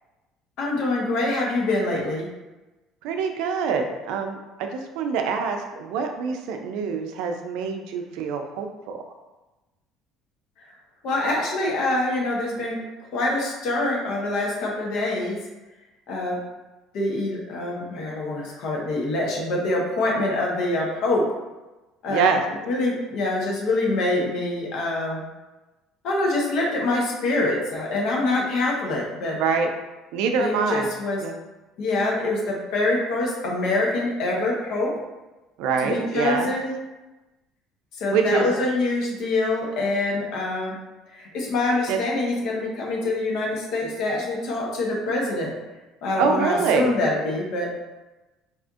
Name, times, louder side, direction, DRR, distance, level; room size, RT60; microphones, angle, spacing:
voice 1, 0.6-2.3 10.6-10.7 11.0-12.8 13.1-15.4 16.1-16.4 16.9-21.2 22.0-22.3 22.6-25.2 26.0-29.4 30.4-31.2 31.8-34.9 35.8-36.7 37.9-40.8 41.1-45.5 46.0-47.7, left 2 dB, 65° left, -2 dB, 0.9 m, -25 dB
voice 2, 3.0-9.0 22.1-22.4 29.4-29.7 30.1-30.9 31.2-31.3 35.6-36.5 38.1-38.5 41.9-42.0 46.2-46.9, right 5 dB, 80° right, 4 dB, 0.4 m, -25 dB
4.1 x 2.5 x 2.4 m, 1.1 s
cardioid pair, 120°, 0 cm